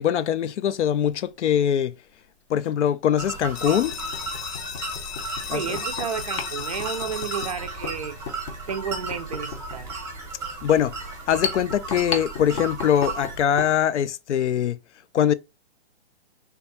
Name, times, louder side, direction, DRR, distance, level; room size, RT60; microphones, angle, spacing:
voice 1, 0.0-1.9 2.5-4.0 5.5-5.8 10.6-10.9 11.3-14.8 15.1-15.3, left 9 dB, 85° left, 0.5 m, -22 dB
sound 1, 1.1-1.2 2.6-2.7 3.3-3.4 3.9-13.8, left 5 dB, 30° left, 0.6 m, -36 dB
sound 2, 3.2-13.4, right 3 dB, 10° right, 0.7 m, -35 dB
sound 3, 3.6-9.0, left 9 dB, 65° left, 0.9 m, -37 dB
voice 2, 5.5-8.2 8.7-9.9, right 7 dB, 35° right, 0.4 m, -32 dB
3.4 x 2.3 x 4.0 m
hypercardioid pair, 150°, 34 cm